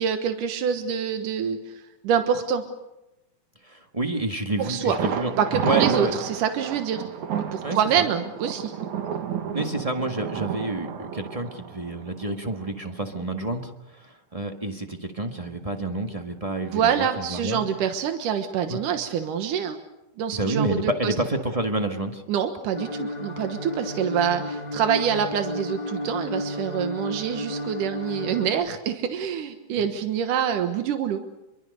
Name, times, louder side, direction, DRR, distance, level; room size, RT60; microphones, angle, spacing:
voice 1, 0.0-2.6 4.6-5.0 5.4-7.0 7.5-8.7 16.7-19.8 20.2-21.1 22.3-31.2, right 8 dB, 90° right, 7 dB, 2.9 m, -26 dB
voice 2, 3.6-5.3 5.6-6.1 7.6-8.0 9.5-17.6 18.7-18.8 20.3-22.2 29.8-29.9, right 2 dB, 25° right, 4 dB, 0.7 m, -29 dB
Thunder, 4.9-12.7 13.0-13.1 13.5-13.6, right 8 dB, 70° right, 3.0 m, -31 dB
sound 1, 22.7-28.5, left 1 dB, 15° left, 2.1 m, -32 dB
27.0 x 23.5 x 6.7 m, 0.93 s
omnidirectional pair, 3.6 m